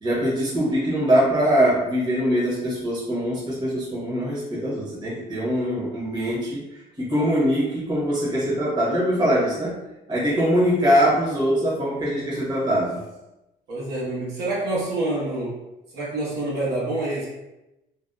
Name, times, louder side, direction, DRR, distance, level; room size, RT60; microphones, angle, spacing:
voice 1, 0.0-6.6 7.0-9.7 10.1-13.0, equal, 25° right, -7 dB, 1.0 m, -22 dB
voice 2, 13.7-15.6 15.9-17.3, right 2 dB, 70° right, -7 dB, 1.1 m, -27 dB
2.6 x 2.2 x 2.3 m, 0.94 s
cardioid pair, 110°, 17 cm